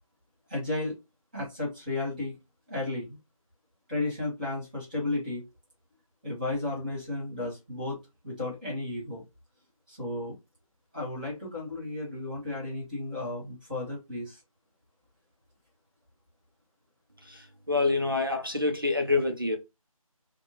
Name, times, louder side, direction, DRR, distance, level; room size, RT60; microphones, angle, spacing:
voice 1, 0.5-1.0 1.3-2.3 2.7-3.2 3.9-5.4 6.2-8.0 8.2-9.2 9.9-10.3 10.9-14.4, left 2 dB, 15° right, 1.3 m, -33 dB
voice 2, 17.3-19.6, left 3 dB, 40° right, 0.4 m, -27 dB
2.7 x 2.1 x 3.0 m
figure-of-eight pair, 165°, 19 cm